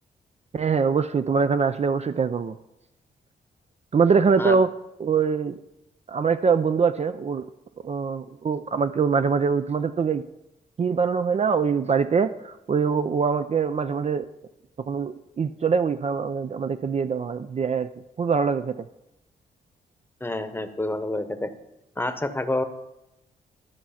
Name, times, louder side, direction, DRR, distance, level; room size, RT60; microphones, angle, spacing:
voice 1, 0.5-2.5 3.9-4.7 5.0-5.6 6.1-7.4 7.8-10.2 10.8-14.2 14.9-17.9 18.2-18.9, right 5 dB, 40° right, 10 dB, 0.5 m, -23 dB
voice 2, 20.2-21.5 22.0-22.6, left 1 dB, 10° left, 9 dB, 0.9 m, -28 dB
13.0 x 4.6 x 5.7 m, 0.89 s
cardioid pair, 70°, 17 cm